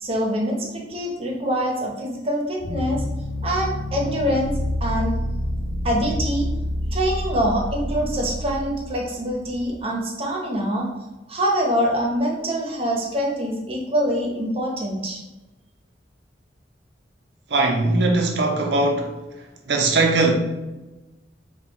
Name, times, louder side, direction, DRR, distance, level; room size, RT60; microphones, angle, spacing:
voice 1, 0.0-3.0 3.4-5.2 5.8-6.5 6.9-10.9 11.3-15.2, equal, 35° right, -1 dB, 0.8 m, -24 dB
sound 1, 2.6-9.8, left 1 dB, 80° left, 0.6 m, -28 dB
voice 2, 17.5-19.1 19.7-20.3, right 2 dB, 65° right, 2 dB, 0.6 m, -20 dB
4.4 x 2.4 x 3.5 m, 1.1 s
head